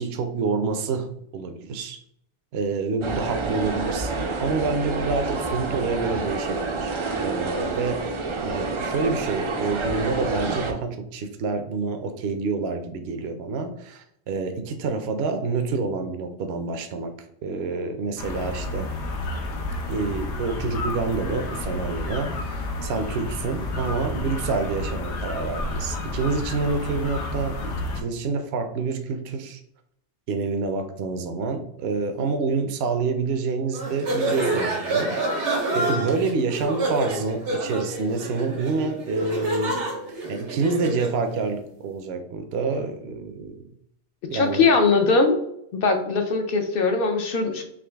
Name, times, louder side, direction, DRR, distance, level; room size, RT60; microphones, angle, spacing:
voice 1, 0.0-2.0 2.5-8.0 8.4-17.1 17.4-18.9 19.9-29.6 30.3-35.2 35.7-39.8 40.3-43.6 44.3-44.7, right 4 dB, 70° right, 7 dB, 0.8 m, -27 dB
sound 1, 3.0-10.7, right 3 dB, 55° right, 0.3 m, -28 dB
sound 2, 18.2-28.0, left 2 dB, 80° left, 1.0 m, -30 dB
sound 3, 33.7-41.2, right 2 dB, 85° right, 1.3 m, -27 dB
voice 2, 44.3-45.4 45.7-47.6, left 4 dB, 60° left, 5 dB, 0.7 m, -20 dB
3.8 x 3.0 x 3.3 m, 0.74 s
omnidirectional pair, 1.1 m